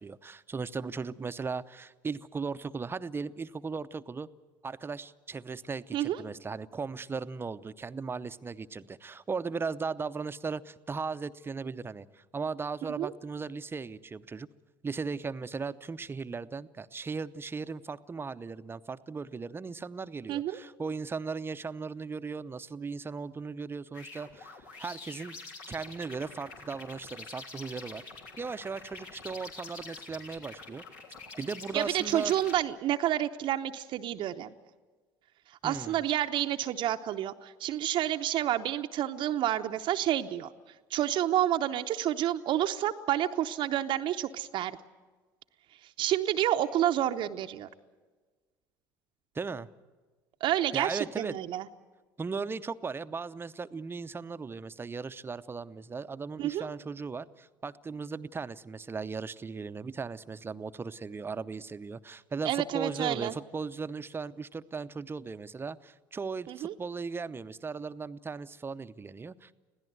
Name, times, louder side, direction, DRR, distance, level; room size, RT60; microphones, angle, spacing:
voice 1, 0.0-4.3 4.6-14.5 14.8-25.4 25.7-28.0 28.4-30.8 31.4-32.3 35.6-36.0 49.3-49.7 50.7-51.4 52.2-69.5, right 4 dB, 20° right, 12 dB, 0.7 m, -37 dB
voice 2, 20.3-20.6 31.7-34.5 35.6-40.5 40.9-44.8 46.0-47.7 50.4-51.6 56.4-56.7 62.4-63.3 66.5-66.7, right 12 dB, 50° right, 7 dB, 0.8 m, -29 dB
sound 1, 23.9-32.6, left 3 dB, 70° left, 3.3 m, -46 dB
26.0 x 16.5 x 8.0 m, 1.4 s
hypercardioid pair, 65°, 10 cm